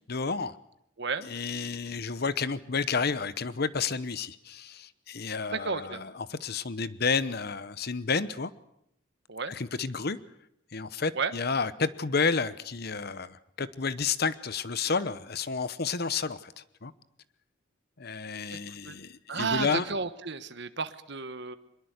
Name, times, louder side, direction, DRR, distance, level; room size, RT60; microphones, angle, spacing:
voice 1, 0.1-0.6 1.2-8.5 9.5-10.2 10.7-16.9 18.0-19.9, left 5 dB, 55° left, 15 dB, 0.9 m, -31 dB
voice 2, 5.5-6.0 9.3-9.5 11.1-11.3 18.8-18.9 19.3-21.6, right 5 dB, 60° right, 10 dB, 1.3 m, -32 dB
23.5 x 22.0 x 8.1 m, 0.76 s
head